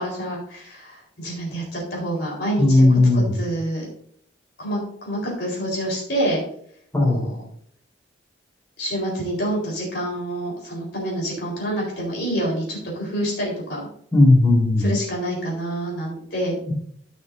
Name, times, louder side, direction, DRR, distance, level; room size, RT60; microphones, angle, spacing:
voice 1, 0.0-3.9 4.6-6.4 7.1-7.4 8.8-13.8 14.8-16.5, right 1 dB, 60° left, -3 dB, 4.0 m, -27 dB
voice 2, 2.6-3.3 6.9-7.3 14.1-14.9, left 2 dB, 15° left, -5 dB, 3.8 m, -16 dB
15.5 x 6.4 x 2.6 m, 0.64 s
head